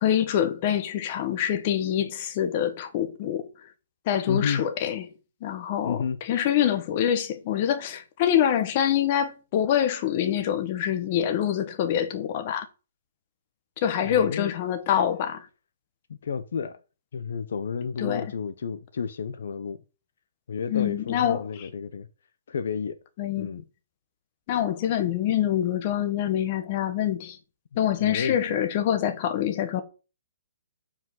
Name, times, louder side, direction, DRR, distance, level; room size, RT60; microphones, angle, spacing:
voice 1, 0.0-3.5 4.1-5.1 5.4-12.7 13.8-15.5 18.0-18.3 20.7-21.7 23.2-23.5 24.5-27.4 27.8-29.8, left 10 dB, 35° left, 1.2 m, -25 dB
voice 2, 4.3-4.6 5.8-6.2 14.0-14.5 16.2-16.8 17.1-19.8 20.5-22.1 22.5-23.0 23.4-23.6 28.0-28.4, left 6 dB, 70° left, 0.8 m, -31 dB
5.8 x 5.0 x 6.4 m
hypercardioid pair, 155°, 0 cm